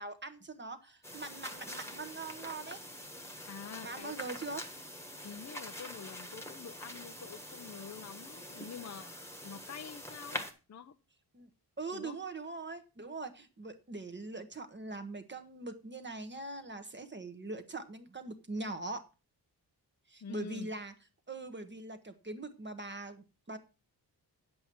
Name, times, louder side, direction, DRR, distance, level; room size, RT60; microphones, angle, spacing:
voice 1, 0.0-2.8 3.8-4.6 11.3-11.5 11.8-19.0 20.1-20.9 21.3-23.6, right 3 dB, 25° right, 8 dB, 1.1 m, -42 dB
sound 1, 1.0-10.5, left 1 dB, 5° left, 1.4 m, -45 dB
voice 2, 3.5-4.1 5.2-9.1 9.4-10.9 11.9-12.2 20.2-20.7, left 7 dB, 40° left, 11 dB, 0.6 m, -47 dB
9.5 x 7.9 x 4.5 m, 0.32 s
wide cardioid pair, 145°, 41 cm